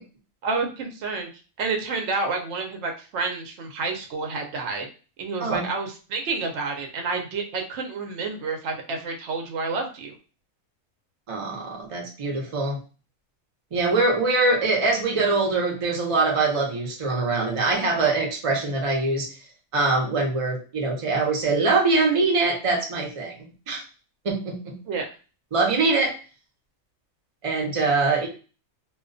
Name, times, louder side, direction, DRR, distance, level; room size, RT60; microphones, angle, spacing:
voice 1, 0.4-1.3 1.6-4.9 5.2-10.1 24.9-25.1, right 4 dB, 65° right, 3 dB, 0.8 m, -29 dB
voice 2, 11.3-12.8 13.7-19.3 19.7-23.8 24.2-24.8 25.5-26.1 27.4-28.3, right 3 dB, 45° right, 0 dB, 0.4 m, -23 dB
2.3 x 2.2 x 2.5 m, 0.35 s
omnidirectional pair, 1.5 m